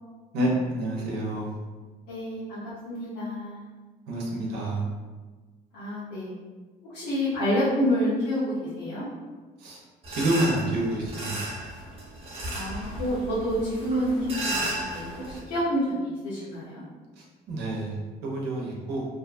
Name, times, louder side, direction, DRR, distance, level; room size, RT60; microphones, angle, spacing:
voice 1, 0.3-1.6 4.1-4.8 9.6-9.8 10.1-11.4 17.2-19.1, right 1 dB, 80° right, -2 dB, 0.7 m, -28 dB
voice 2, 2.1-3.7 5.7-6.3 6.9-8.4 8.8-9.1 12.5-16.8, equal, 75° left, -12 dB, 0.9 m, -28 dB
sound 1, 10.0-15.4, right 1 dB, 35° right, 0.7 m, -34 dB
2.6 x 2.2 x 2.5 m, 1.3 s
cardioid pair, 110°, 17 cm